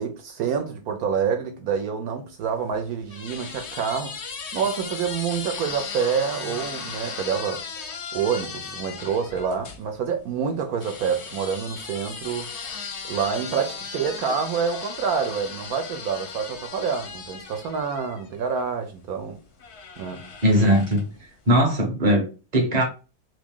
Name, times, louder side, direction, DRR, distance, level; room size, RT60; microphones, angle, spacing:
voice 1, 0.0-4.2 4.5-7.6 8.1-12.5 13.1-19.4 20.0-20.2, right 6 dB, 70° right, 1.0 m, -27 dB
sound 1, 2.4-9.8 10.8-18.7 19.6-21.2, left 5 dB, 60° left, 0.7 m, -37 dB
voice 2, 20.4-21.1 21.5-22.8, equal, 35° right, 0.7 m, -20 dB
2.9 x 2.6 x 3.5 m
omnidirectional pair, 1.8 m